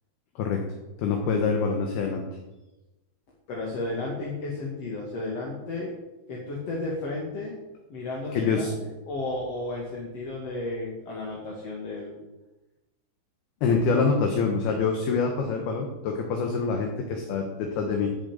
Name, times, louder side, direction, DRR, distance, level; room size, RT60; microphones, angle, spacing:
voice 1, 1.0-2.2 8.3-8.7 13.6-18.1, left 5 dB, 65° left, 2 dB, 3.0 m, -25 dB
voice 2, 3.5-5.9 6.3-7.6 7.9-12.2 13.6-13.8, left 2 dB, 45° left, -3 dB, 2.6 m, -33 dB
14.0 x 7.4 x 9.1 m, 1.0 s
omnidirectional pair, 5.3 m